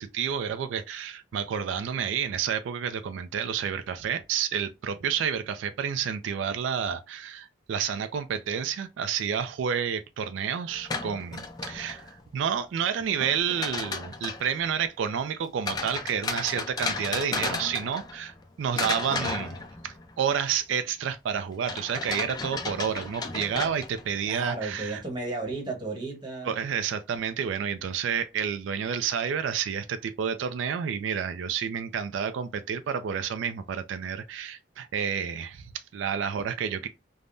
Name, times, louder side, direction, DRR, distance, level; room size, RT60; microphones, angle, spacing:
voice 1, 0.0-19.6 19.8-25.0 26.4-36.9, right 7 dB, 85° right, 0.3 m, -30 dB
sound 1, 10.7-12.2 13.2-14.5 15.7-18.4 18.8-20.1 21.7-24.2, left 4 dB, 20° left, 0.3 m, -34 dB
voice 2, 24.2-26.5, right 3 dB, 25° right, 1.0 m, -34 dB
3.4 x 2.0 x 2.5 m
head